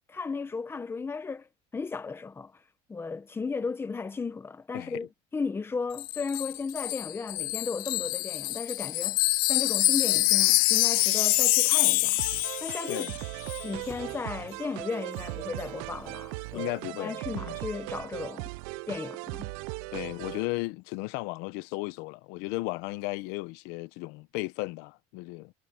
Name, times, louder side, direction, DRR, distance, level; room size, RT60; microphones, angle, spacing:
voice 1, 0.1-2.5 2.9-5.1 5.3-9.2 9.5-12.2 12.6-13.1 13.6-16.7 17.0-18.5 18.9-19.5, left 4 dB, 15° left, 1.1 m, -35 dB
Wind chime, 6.0-13.2 13.5-13.7, left 21 dB, 55° left, 0.5 m, -26 dB
sound 1, 12.2-20.5, right 26 dB, 85° right, 0.4 m, -38 dB
Slam, 12.7-12.8 13.1-15.0, right 2 dB, 5° right, 4.3 m, -52 dB
voice 2, 16.5-17.6 19.9-25.5, left 22 dB, 70° left, 0.9 m, -35 dB
cardioid pair, 160°, 18 cm